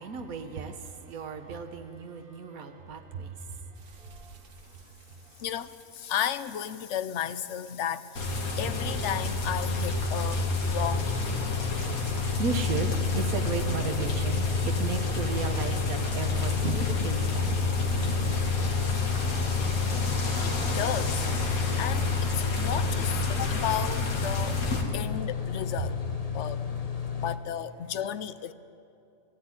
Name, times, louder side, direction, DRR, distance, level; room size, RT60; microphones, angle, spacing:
voice 1, 0.0-4.9 11.4-17.5, right 5 dB, 75° right, 5 dB, 1.6 m, -36 dB
sound 1, 3.7-20.1, right 3 dB, 60° right, 1.7 m, -46 dB
voice 2, 5.4-11.2 20.4-24.6 24.9-26.0 26.3-26.8 27.1-28.5, left 9 dB, 60° left, 14 dB, 0.9 m, -34 dB
sound 2, 8.2-24.8, left 2 dB, 80° left, 2.3 m, -29 dB
sound 3, 10.8-27.4, left 7 dB, 30° left, 0.9 m, -33 dB
18.5 x 14.5 x 9.7 m, 2.7 s
omnidirectional pair, 1.5 m